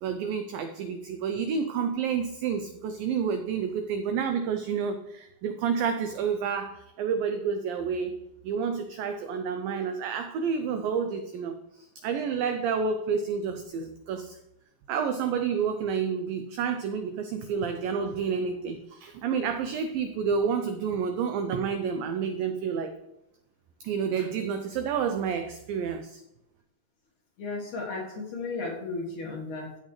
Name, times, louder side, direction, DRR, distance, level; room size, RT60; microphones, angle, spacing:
voice 1, 0.0-8.2 8.4-14.4 14.9-22.9 23.8-26.2, right 6 dB, 85° right, 7 dB, 2.0 m, -29 dB
voice 2, 27.4-29.8, left 3 dB, 60° left, -2 dB, 2.4 m, -34 dB
14.5 x 7.5 x 3.2 m, 0.85 s
omnidirectional pair, 4.9 m